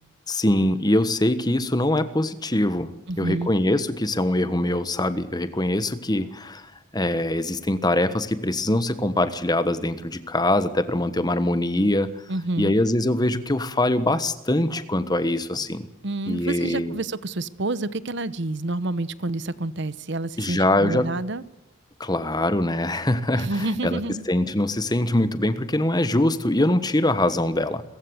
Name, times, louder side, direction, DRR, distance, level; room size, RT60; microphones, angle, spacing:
voice 1, 0.3-2.9 3.2-6.6 6.9-12.1 12.6-15.9 16.3-16.9 20.4-21.1 22.0-24.0 24.3-27.8, left 1 dB, 20° left, 12 dB, 1.3 m, -23 dB
voice 2, 3.1-3.5 12.3-12.8 16.0-21.4 23.4-24.2, right 2 dB, 60° right, 17 dB, 0.9 m, -28 dB
28.0 x 15.0 x 8.1 m, 0.94 s
head